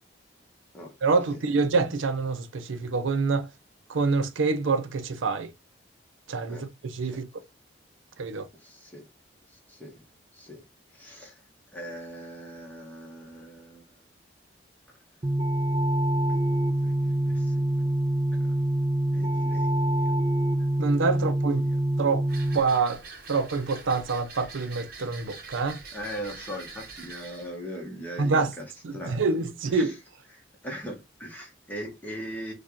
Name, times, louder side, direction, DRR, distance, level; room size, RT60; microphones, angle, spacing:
voice 1, 1.0-3.5 3.9-5.5 6.3-6.6 6.9-7.3 8.2-8.5 20.8-21.6 22.0-22.3 22.5-23.0 23.3-25.8 28.2-28.5 28.8-29.9, right 4 dB, 90° right, 0.5 m, -26 dB
voice 2, 8.6-9.1 9.5-10.0 10.3-10.6 10.9-11.3 11.7-14.0 14.9-15.0 16.4-17.9 18.3-18.6 19.1-20.2 21.1-21.3 21.6-21.8 25.9-29.2 29.7-29.9 30.3-32.5, equal, 10° left, 1.1 m, -41 dB
sound 1, 15.2-22.6, right 1 dB, 25° right, 0.4 m, -25 dB
sound 2, 22.3-27.6, right 4 dB, 50° right, 0.9 m, -44 dB
4.4 x 2.3 x 2.9 m
head